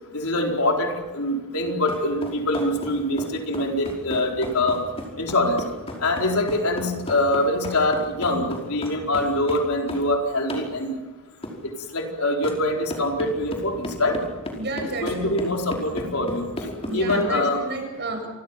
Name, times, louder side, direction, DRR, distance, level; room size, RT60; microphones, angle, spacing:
voice 1, 0.1-4.8 5.2-5.6 6.0-11.0 11.9-14.2 15.0-16.5 16.9-17.6, left 1 dB, 80° left, 1 dB, 4.6 m, -24 dB
sound 1, 1.9-10.1 10.5-10.7 11.4-11.6 12.4-12.6 12.9-17.2, left 1 dB, 30° left, 5.1 m, -34 dB
voice 2, 14.6-15.3 16.8-18.2, right 2 dB, 55° right, 4 dB, 7.2 m, -30 dB
28.5 x 24.0 x 6.0 m, 1.2 s
head